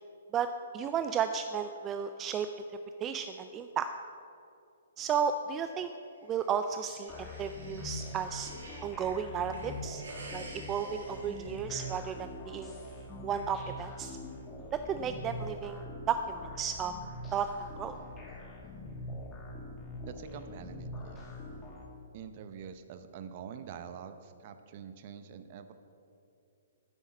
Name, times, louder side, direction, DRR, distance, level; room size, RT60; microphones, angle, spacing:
voice 1, 0.7-2.5 3.0-3.9 5.0-5.9 6.3-8.5 8.8-10.0 10.3-12.7 13.2-14.2 14.7-16.9 17.3-17.5 17.8-17.9, right 7 dB, 20° right, 9 dB, 0.4 m, -33 dB
sound 1, 6.2-8.9 9.3-12.2, right 2 dB, 70° right, 2.7 m, -50 dB
sound 2, 7.1-21.9, left 1 dB, 15° left, 1.9 m, -43 dB
voice 2, 20.1-21.3 22.1-25.7, right 7 dB, 45° right, 10 dB, 0.8 m, -46 dB
9.5 x 8.2 x 6.2 m, 2.6 s
figure-of-eight pair, 125°, 0 cm